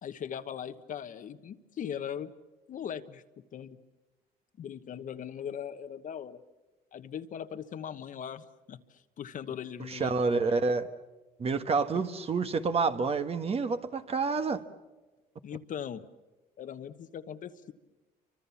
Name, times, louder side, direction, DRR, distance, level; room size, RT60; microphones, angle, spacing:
voice 1, 0.0-2.3 2.7-3.2 3.5-3.8 4.6-6.4 6.9-10.6 15.4-16.0 16.6-17.7, left 8 dB, 50° left, 1.3 m, -40 dB
voice 2, 9.9-10.9 11.4-14.6, right 4 dB, 35° right, 1.6 m, -28 dB
28.5 x 25.5 x 7.1 m
cardioid pair, 110°, 17 cm